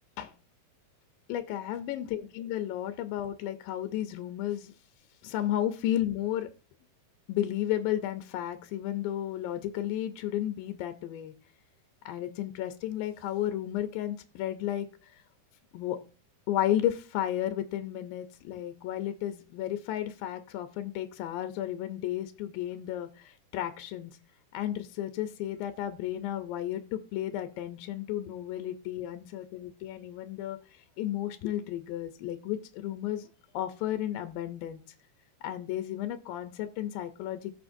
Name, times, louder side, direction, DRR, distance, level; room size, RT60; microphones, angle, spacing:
voice 1, 1.3-4.7 5.2-6.5 7.3-11.3 12.1-14.9 15.7-16.0 16.5-24.2 24.5-30.6 31.0-33.3 33.5-34.8 35.4-37.5, left 12 dB, 85° left, 9 dB, 2.5 m, -33 dB
19.5 x 6.5 x 2.6 m, 0.35 s
omnidirectional pair, 4.0 m